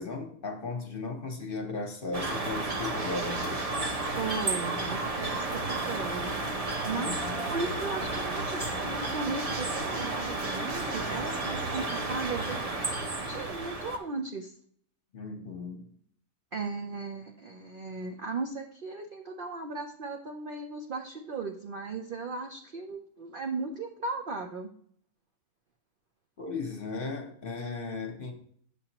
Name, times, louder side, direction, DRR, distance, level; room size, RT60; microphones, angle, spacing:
voice 1, 0.0-3.6 6.9-7.4 15.1-15.9 26.4-28.3, left 3 dB, 40° left, 3 dB, 0.9 m, -36 dB
sound 1, 2.1-14.0, right 2 dB, 35° right, 0.6 m, -32 dB
voice 2, 4.2-6.3 6.8-7.2 7.5-12.9 13.3-14.5 16.5-24.7, right 4 dB, 80° right, 3 dB, 0.4 m, -36 dB
7.5 x 7.1 x 2.9 m, 0.62 s
omnidirectional pair, 1.7 m